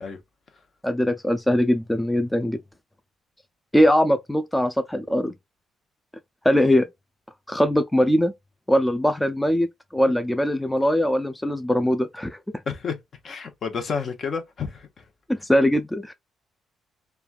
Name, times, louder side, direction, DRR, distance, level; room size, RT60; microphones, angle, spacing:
voice 1, 0.8-2.6 3.7-5.3 6.4-6.9 7.5-8.3 8.7-9.7 9.9-12.4 15.3-16.1, equal, 5° left, 0.3 m, -21 dB
voice 2, 12.7-13.0 13.2-15.0, left 5 dB, 50° left, 0.8 m, -30 dB
3.1 x 2.3 x 2.4 m
cardioid pair, 90°, 0 cm